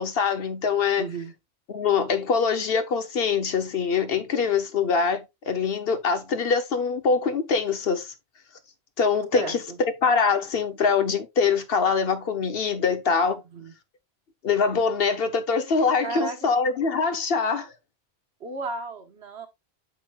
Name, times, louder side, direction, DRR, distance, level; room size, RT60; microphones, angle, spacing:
voice 1, 0.0-1.1 1.7-8.1 9.0-9.6 10.0-13.4 14.4-17.7, left 5 dB, 65° left, 1.1 m, -24 dB
voice 2, 1.0-1.3 9.3-9.8 13.5-13.7 16.0-16.5 18.4-19.5, right 4 dB, 85° right, 1.6 m, -33 dB
8.2 x 6.1 x 2.3 m
omnidirectional pair, 1.1 m